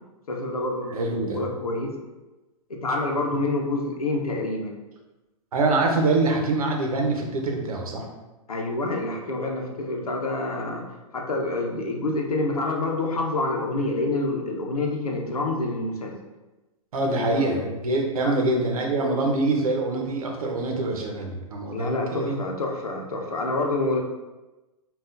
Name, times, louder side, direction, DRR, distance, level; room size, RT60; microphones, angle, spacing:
voice 1, 0.3-1.1 1.3-1.9 2.7-4.8 8.5-10.9 11.1-16.1 17.0-17.7 18.2-18.3 21.7-24.0, left 2 dB, 90° left, 0 dB, 0.8 m, -27 dB
voice 2, 0.9-1.4 5.5-8.1 16.9-22.4, right 2 dB, 75° right, 2 dB, 0.8 m, -25 dB
5.4 x 2.5 x 2.5 m, 1.1 s
hypercardioid pair, 110°, 18 cm